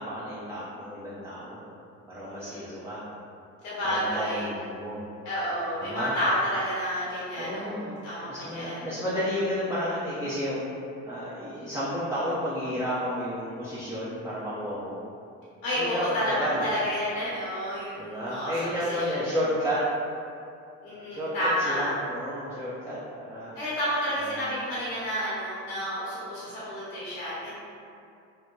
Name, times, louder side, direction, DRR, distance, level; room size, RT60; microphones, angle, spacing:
voice 1, 0.0-1.6 2.1-3.0 3.8-5.0 5.8-6.1 7.4-7.9 8.3-10.6 11.1-15.0 15.8-16.7 18.0-19.8 21.1-21.3 21.7-23.5 24.2-24.5, equal, 5° right, -10 dB, 0.5 m, -32 dB
voice 2, 2.3-2.7 3.6-4.4 5.2-8.8 15.6-18.5 18.9-19.1 20.8-21.9 23.5-27.5, equal, 80° left, -10 dB, 0.9 m, -30 dB
2.8 x 2.1 x 2.2 m, 2.5 s
hypercardioid pair, 60°, 38 cm